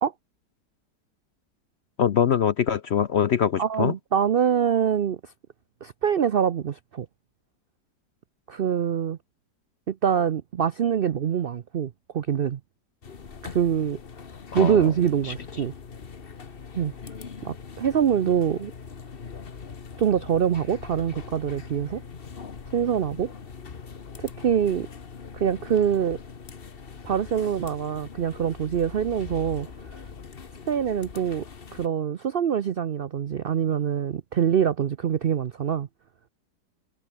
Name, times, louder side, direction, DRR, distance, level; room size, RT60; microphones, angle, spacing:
voice 1, 2.0-3.9 14.5-14.9 15.2-15.3, left 8 dB, 60° left, 0.7 m, -23 dB
voice 2, 3.6-5.2 5.8-7.1 8.5-9.2 9.9-12.6 13.4-14.0 14.5-15.7 16.7-16.9 17.4-18.7 20.0-22.0 22.7-23.3 24.2-24.9 25.3-26.2 27.0-29.7 30.7-31.4 31.7-35.9, right 8 dB, 85° right, 0.5 m, -24 dB
sound 1, 13.0-31.9, left 5 dB, 35° left, 1.3 m, -42 dB
omnidirectional pair, 1.8 m